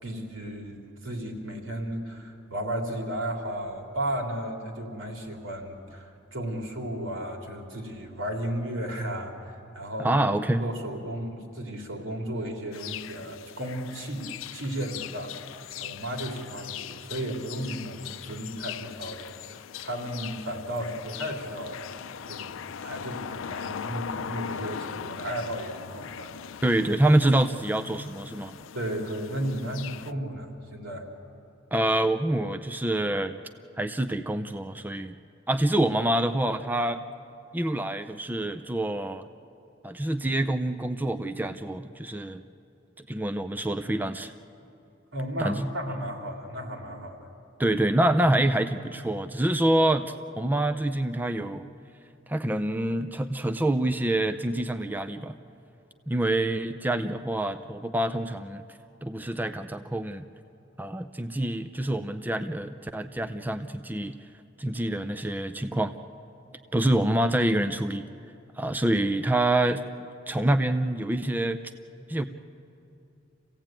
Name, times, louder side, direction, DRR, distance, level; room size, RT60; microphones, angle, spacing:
voice 1, 0.0-10.1 10.6-22.0 22.2-26.3 28.7-31.1 45.1-47.2, right 1 dB, 80° right, 2 dB, 3.3 m, -34 dB
voice 2, 10.0-10.7 26.6-28.5 31.7-33.4 33.8-35.1 35.5-37.0 37.5-39.3 39.8-42.4 43.0-44.3 45.4-45.7 47.6-51.7 52.3-55.4 56.1-58.6 59.0-60.3 60.8-64.1 64.6-65.9 66.7-68.1 68.6-69.8 70.3-71.6 72.1-72.2, right 1 dB, 10° right, 8 dB, 0.5 m, -26 dB
sound 1, 12.7-30.1, left 8 dB, 90° left, 0.5 m, -40 dB
27.0 x 16.5 x 9.0 m, 2.8 s
head